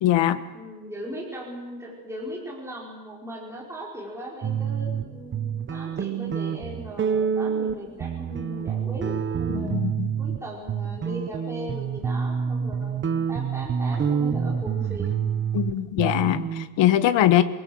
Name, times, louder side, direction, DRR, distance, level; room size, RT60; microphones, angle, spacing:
voice 1, 0.0-0.4 9.5-10.1 15.5-17.4, left 12 dB, 60° left, 11 dB, 1.5 m, -21 dB
voice 2, 0.5-9.8 10.2-15.2, equal, 5° right, -4 dB, 4.9 m, -38 dB
sound 1, 4.4-5.0 5.3-10.4 10.7-16.7, right 7 dB, 25° right, 0.8 m, -27 dB
28.0 x 19.5 x 7.9 m, 1.2 s
cardioid pair, 180°, 48 cm